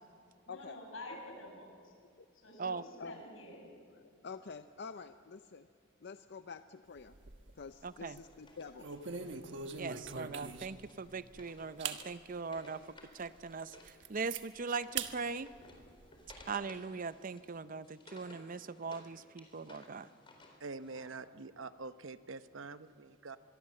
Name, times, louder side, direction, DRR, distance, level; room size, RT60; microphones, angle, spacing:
voice 1, 0.5-1.9 2.3-3.6, left 1 dB, 90° left, 2 dB, 7.1 m, -49 dB
voice 2, 3.9-5.7 6.0-7.2 7.6-8.9, left 5 dB, 55° left, 10 dB, 0.6 m, -48 dB
sound 1, 7.0-7.7 8.0-8.3 8.8-10.9 11.3-11.4 11.8-12.0 12.6-12.7 13.2-13.3 13.6-14.4 15.0-15.1 15.5-16.4, right 6 dB, 65° right, 1.4 m, -42 dB
voice 3, 7.8-8.2 9.8-12.8 13.1-15.5 16.5-20.1, right 4 dB, 45° right, 14 dB, 0.6 m, -40 dB
Wood, 7.9-14.0 14.2-19.1 19.4-21.1, left 2 dB, 25° left, 4.0 m, -59 dB
voice 4, 20.6-23.4, right 3 dB, 80° right, 12 dB, 0.9 m, -45 dB
25.0 x 22.5 x 7.6 m, 2.2 s
head